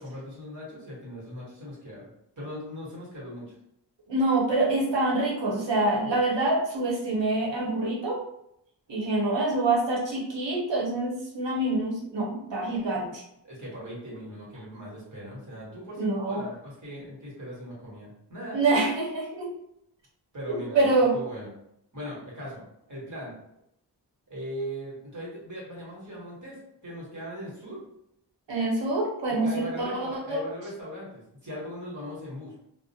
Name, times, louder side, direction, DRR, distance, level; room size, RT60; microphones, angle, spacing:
voice 1, 0.0-2.1 2.4-3.5 13.4-18.6 20.3-20.8 21.1-21.5 21.9-23.3 24.3-27.8 29.2-32.6, equal, 45° right, -6 dB, 1.3 m, -39 dB
voice 2, 4.1-8.2 8.9-13.2 16.0-16.4 18.5-19.5 20.5-21.1 28.5-30.4, right 2 dB, 85° right, -3 dB, 0.8 m, -26 dB
2.4 x 2.1 x 2.7 m, 0.77 s
wide cardioid pair, 70°, 43 cm